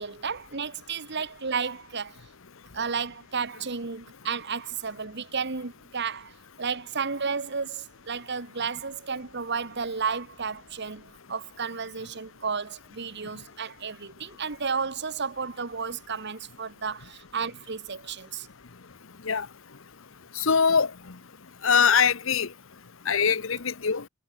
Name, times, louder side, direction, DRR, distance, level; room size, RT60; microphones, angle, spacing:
voice 1, 0.0-2.2 2.7-18.5, right 5 dB, 60° right, 1.6 m, -32 dB
voice 2, 20.4-20.9 21.6-22.5 23.1-24.0, left 6 dB, 70° left, 1.0 m, -22 dB
head